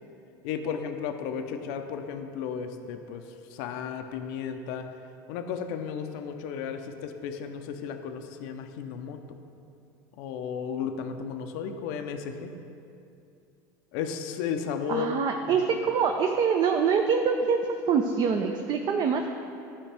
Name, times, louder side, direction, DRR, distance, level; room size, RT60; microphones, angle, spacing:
voice 1, 0.4-3.2 3.5-4.8 5.3-9.4 10.2-12.5 13.9-15.1, left 7 dB, 70° left, 7 dB, 0.6 m, -34 dB
voice 2, 14.9-19.3, right 6 dB, 45° right, 3 dB, 0.5 m, -25 dB
11.5 x 4.9 x 3.4 m, 2.6 s
supercardioid pair, 100°, 10 cm